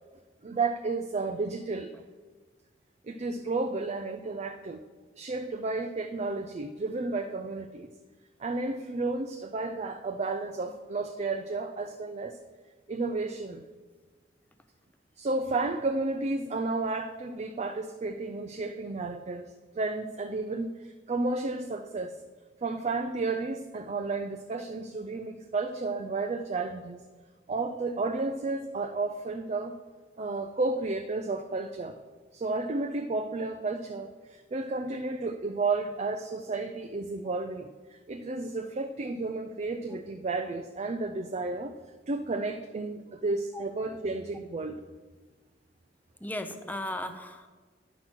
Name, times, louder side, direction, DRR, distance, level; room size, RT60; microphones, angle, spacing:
voice 1, 0.4-1.9 3.0-4.8 5.2-7.9 8.4-12.4 12.9-13.6 15.2-22.2 22.6-27.0 27.5-29.8 30.2-32.0 32.3-41.7 42.1-44.8, right 3 dB, 40° right, 7 dB, 0.4 m, -32 dB
voice 2, 46.2-47.5, left 1 dB, 10° left, 8 dB, 0.6 m, -36 dB
10.0 x 5.8 x 6.1 m, 1.4 s
head